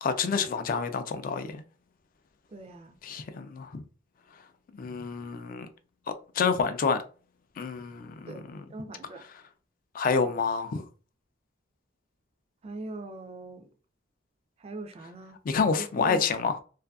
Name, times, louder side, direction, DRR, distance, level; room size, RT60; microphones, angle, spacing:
voice 1, 0.0-1.6 3.0-3.8 4.8-5.7 6.4-7.0 7.6-8.6 9.9-10.8 15.5-16.6, left 5 dB, 45° left, 0.3 m, -28 dB
voice 2, 2.5-2.9 8.3-9.2 12.6-13.7 14.6-15.4 15.7-16.2, right 2 dB, 35° right, 0.3 m, -41 dB
2.6 x 2.4 x 2.3 m
head